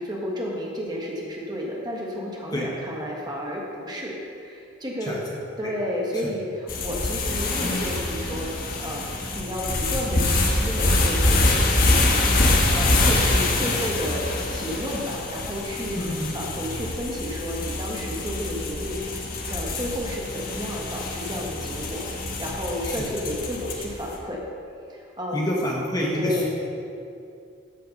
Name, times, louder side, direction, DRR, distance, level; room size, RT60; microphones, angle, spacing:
voice 1, 0.0-5.2 5.6-9.1 9.3-12.4 12.7-24.4 24.9-25.4 26.1-26.5, equal, 20° right, -2 dB, 1.4 m, -32 dB
sound 1, 6.7-24.1, left 2 dB, 45° left, 1.2 m, -25 dB
voice 2, 16.0-16.3 22.8-23.1 25.3-26.5, equal, 20° left, -3 dB, 1.1 m, -27 dB
13.5 x 5.6 x 5.3 m, 2.5 s
head